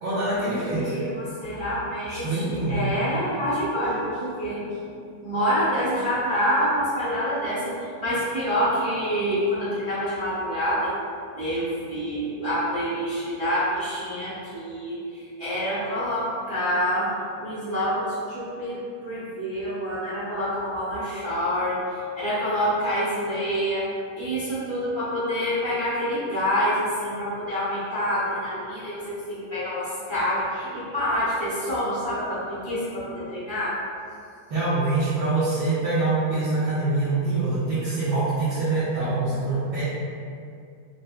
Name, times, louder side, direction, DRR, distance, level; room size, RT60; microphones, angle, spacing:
voice 1, 0.0-1.0 2.1-2.9 34.5-39.8, right 3 dB, 75° right, -13 dB, 1.7 m, -25 dB
voice 2, 0.7-4.6 5.2-10.9 11.3-17.1 17.4-23.9 24.2-33.8, equal, 40° right, -12 dB, 0.8 m, -27 dB
4.7 x 3.2 x 2.2 m, 2.3 s
omnidirectional pair, 2.3 m